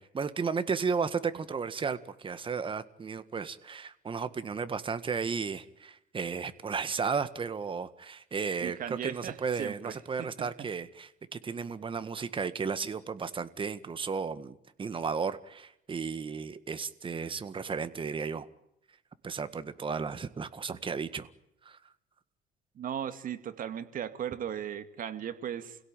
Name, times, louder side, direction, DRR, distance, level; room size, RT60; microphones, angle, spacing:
voice 1, 0.0-18.5 19.2-21.3 21.7-21.8, right 5 dB, 30° right, 12 dB, 1.8 m, -34 dB
voice 2, 8.6-10.5 22.8-25.8, right 9 dB, 55° right, 10 dB, 2.3 m, -37 dB
29.5 x 17.0 x 9.1 m, 0.80 s
cardioid pair, 110°, 17 cm